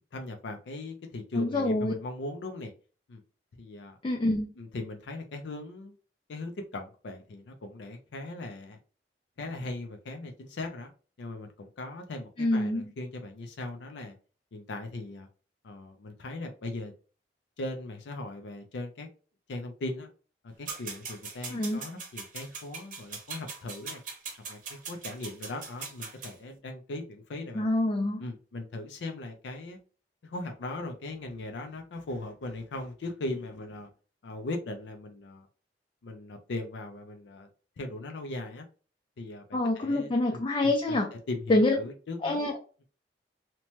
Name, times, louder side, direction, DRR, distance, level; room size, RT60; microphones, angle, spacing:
voice 1, 0.0-2.7 3.1-3.2 3.6-4.0 4.6-6.0 6.3-8.8 9.4-10.9 11.2-14.1 14.5-15.3 15.6-16.9 17.6-19.1 19.5-20.1 20.4-24.0 24.5-27.8 28.2-29.8 30.2-33.9 34.2-35.5 36.0-37.5 37.8-38.7 39.2-41.0 41.3-42.4, left 2 dB, 90° left, 5 dB, 0.5 m, -39 dB
voice 2, 1.4-1.9 4.0-4.5 12.4-12.9 21.5-21.8 27.5-28.2 39.5-41.1 41.5-41.8 42.2-42.6, left 2 dB, 30° left, 2 dB, 0.3 m, -26 dB
sound 1, 20.7-26.3, right 5 dB, 50° right, 0.8 m, -41 dB
2.8 x 2.1 x 2.9 m, 0.37 s
head